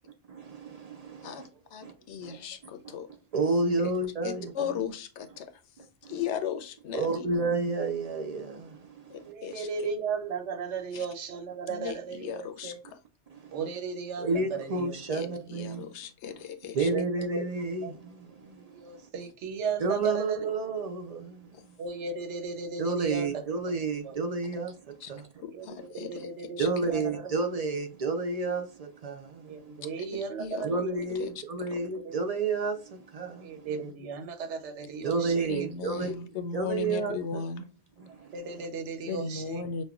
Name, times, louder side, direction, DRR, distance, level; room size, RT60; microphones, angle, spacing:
voice 1, 0.3-1.5 1.8-1.9 2.2-2.4 2.8-2.9 3.3-4.7 6.0-6.2 6.9-9.3 13.3-13.8 14.2-15.8 16.7-19.1 19.8-22.0 22.8-25.3 26.6-29.8 30.6-33.9 35.0-36.2 36.5-37.4 38.0-38.7, right 3 dB, 50° right, 0.4 m, -31 dB
voice 2, 1.2-3.1 3.8-3.9 4.2-5.6 6.0-7.3 9.1-9.9 10.9-11.1 11.7-13.0 15.1-16.9 21.5-21.6 25.0-25.1 25.4-26.3 26.6-26.7 29.8-30.8 31.1-31.3 31.7-31.8 35.5-37.7 39.1-39.8, left 7 dB, 80° left, 0.9 m, -37 dB
voice 3, 9.2-12.8 13.5-14.9 16.9-17.0 17.3-17.4 17.8-17.9 18.7-20.4 21.8-23.3 24.1-24.2 25.6-27.0 29.4-31.0 32.0-32.1 33.4-35.5 38.3-39.6, right 5 dB, 90° right, 1.1 m, -35 dB
5.3 x 2.2 x 2.3 m
omnidirectional pair, 1.2 m